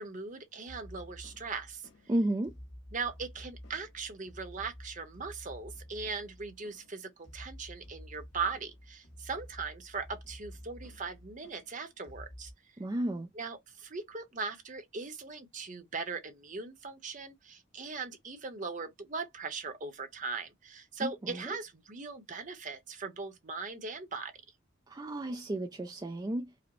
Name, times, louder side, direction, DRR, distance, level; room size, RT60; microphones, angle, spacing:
voice 1, 0.0-1.8 2.9-12.5 13.4-24.3, right 4 dB, 40° right, 0.9 m, -39 dB
sound 1, 0.7-12.5, equal, 85° left, 2.1 m, -51 dB
voice 2, 2.1-2.5 12.8-13.3 21.0-21.6 24.9-26.5, right 1 dB, 20° right, 0.3 m, -33 dB
4.8 x 2.1 x 3.0 m
head